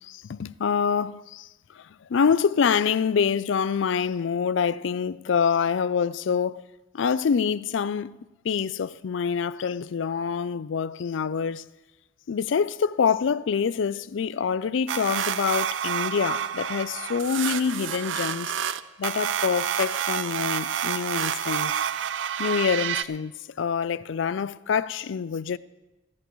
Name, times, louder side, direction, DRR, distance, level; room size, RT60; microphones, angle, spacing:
voice 1, 0.0-1.5 1.7-1.8 2.1-6.6 6.9-8.1 8.4-11.6 12.3-18.5 19.0-21.7 22.4-25.6, left 6 dB, 70° left, 0.4 m, -26 dB
sound 1, 14.9-23.0, right 9 dB, 75° right, 0.5 m, -29 dB
27.0 x 10.5 x 3.1 m
head